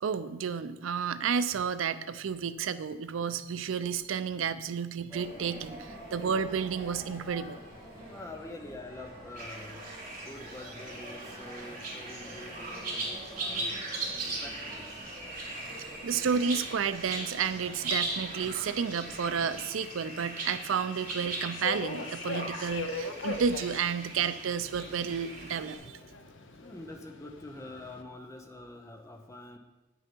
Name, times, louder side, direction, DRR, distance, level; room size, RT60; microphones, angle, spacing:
voice 1, 0.0-7.6 15.6-15.7 16.0-26.0, right 6 dB, 90° right, 13 dB, 0.4 m, -31 dB
sound 1, 5.1-19.6, equal, 15° right, 3.1 m, -47 dB
voice 2, 7.9-13.8 14.2-15.2 25.9-26.0 26.6-29.6, left 1 dB, 15° left, 3 dB, 0.8 m, -46 dB
sound 2, 9.3-25.8, right 2 dB, 45° right, 3.1 m, -39 dB
Subway metro underground, 17.5-28.0, left 3 dB, 65° left, 0.6 m, -42 dB
9.2 x 6.3 x 4.4 m, 1.0 s
head